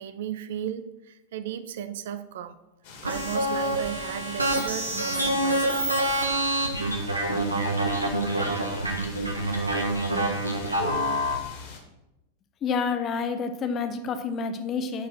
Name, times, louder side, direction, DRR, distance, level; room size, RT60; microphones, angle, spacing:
voice 1, 0.0-2.6 3.0-6.0, right 10 dB, 55° right, 13 dB, 0.6 m, -35 dB
sound 1, 2.8-11.8, left 4 dB, 50° left, 2.4 m, -44 dB
sound 2, 3.0-11.3, right 1 dB, 85° right, 1.4 m, -26 dB
voice 2, 12.6-15.1, left 5 dB, 30° left, 8 dB, 1.0 m, -28 dB
11.0 x 4.6 x 6.0 m, 0.97 s
figure-of-eight pair, 90°, 0 cm